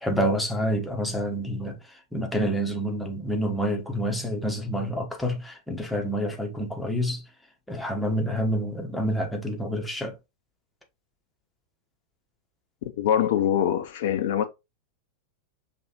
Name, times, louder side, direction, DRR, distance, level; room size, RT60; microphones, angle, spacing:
voice 1, 0.0-7.2 7.7-10.2, equal, 5° left, 1.2 m, -28 dB
voice 2, 13.0-14.4, left 10 dB, 55° left, 0.6 m, -23 dB
5.3 x 3.3 x 3.0 m
figure-of-eight pair, 90°, 0 cm